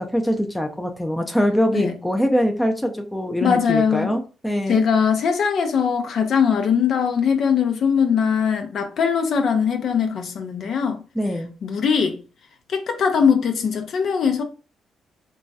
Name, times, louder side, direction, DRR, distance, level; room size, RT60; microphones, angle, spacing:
voice 1, 0.0-4.8 11.2-11.5, equal, 5° left, 0.5 m, -23 dB
voice 2, 3.4-4.1 4.7-11.0 11.6-12.2 12.7-14.4, left 6 dB, 60° left, 0.5 m, -21 dB
3.0 x 2.3 x 2.6 m
cardioid pair, 90°, 0 cm